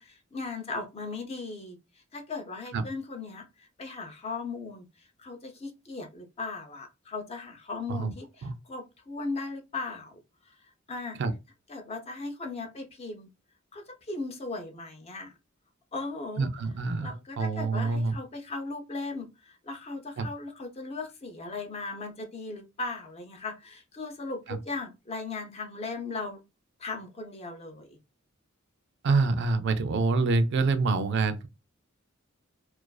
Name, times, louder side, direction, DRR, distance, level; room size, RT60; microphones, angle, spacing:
voice 1, 0.0-1.8 2.1-4.9 5.2-10.2 10.5-10.6 10.9-11.2 11.7-13.3 13.7-15.3 15.9-16.5 17.0-26.4 26.8-28.0, left 3 dB, 30° left, 0.5 m, -37 dB
voice 2, 16.4-18.1 20.2-20.3 24.5-24.6 29.0-31.5, right 3 dB, 60° right, 0.3 m, -26 dB
2.4 x 2.3 x 2.3 m
head